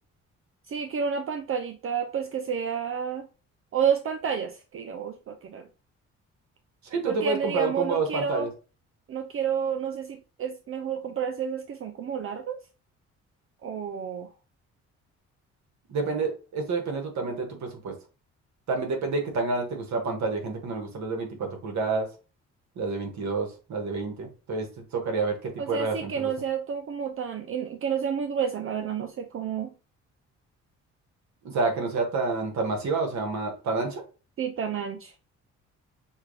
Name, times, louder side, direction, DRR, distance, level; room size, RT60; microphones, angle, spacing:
voice 1, 0.7-3.3 3.7-5.7 7.1-8.5 9.1-12.6 13.6-14.3 25.6-29.7 34.4-35.1, right 7 dB, 45° right, 0.6 m, -30 dB
voice 2, 6.9-8.5 15.9-17.9 18.7-22.1 22.7-24.7 24.9-26.3 31.4-34.0, right 4 dB, 65° right, 1.7 m, -29 dB
6.3 x 2.4 x 3.2 m
cardioid pair, 90°, 30 cm